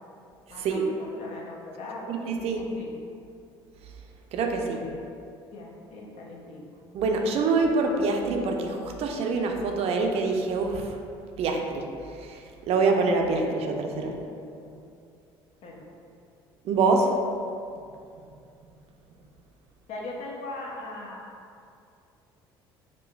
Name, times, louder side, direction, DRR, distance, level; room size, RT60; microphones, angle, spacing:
voice 1, 0.5-2.2 2.6-2.9 4.6-5.0 5.5-6.7 14.6-14.8 15.6-15.9 19.9-21.3 21.7-21.8, left 2 dB, 60° left, -2 dB, 0.7 m, -40 dB
voice 2, 2.1-2.6 4.3-4.8 6.9-10.9 11.4-11.8 12.2-14.1 16.6-17.1, right 3 dB, 55° right, 2 dB, 0.5 m, -25 dB
5.0 x 2.4 x 2.3 m, 2.5 s
hypercardioid pair, 65°, 12 cm